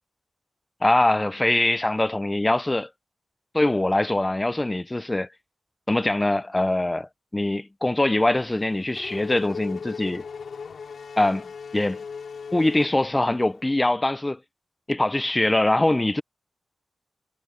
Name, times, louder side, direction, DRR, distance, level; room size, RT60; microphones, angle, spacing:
voice 1, 0.8-2.9 3.5-5.3 5.9-10.3 11.2-12.0 12.5-14.4 14.9-16.2, left 1 dB, 15° left, 0.5 m, -23 dB
Race car auto racing / Accelerating revving vroom, 8.4-13.6, left 6 dB, 70° left, 2.7 m, -38 dB
wide cardioid pair, 160°, 0 cm